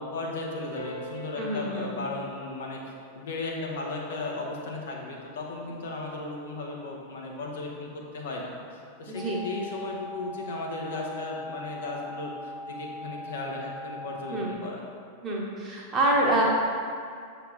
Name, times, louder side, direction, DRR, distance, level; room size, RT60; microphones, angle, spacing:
voice 1, 0.0-2.8 3.1-14.8, left 3 dB, 60° left, -1 dB, 0.8 m, -36 dB
Piano, 0.7-5.9 6.8-6.9, equal, 75° left, 1.2 m, -47 dB
voice 2, 1.4-1.9 9.1-9.4 14.3-14.6 15.2-16.4, right 1 dB, 25° right, -3 dB, 1.2 m, -26 dB
sound 1, 9.2-14.6, left 1 dB, 15° left, 0.3 m, -40 dB
6.8 x 3.0 x 4.8 m, 2.2 s
figure-of-eight pair, 90°, 0 cm